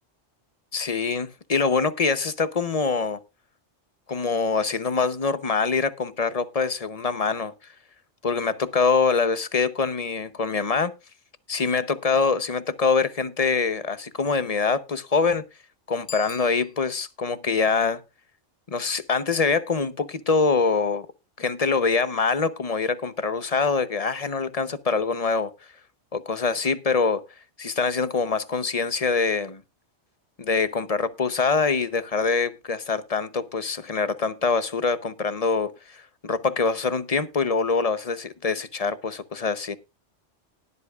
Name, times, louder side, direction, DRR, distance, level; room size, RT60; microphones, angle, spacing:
voice 1, 0.7-3.2 4.1-7.5 8.2-10.9 11.5-15.4 15.9-18.0 18.7-21.1 21.4-25.5 26.1-27.2 27.6-29.6 30.4-39.8, left 4 dB, 35° left, 0.8 m, -24 dB
Bicycle bell, 16.0-17.2, left 8 dB, 80° left, 1.3 m, -43 dB
19.0 x 8.1 x 2.4 m
omnidirectional pair, 1.2 m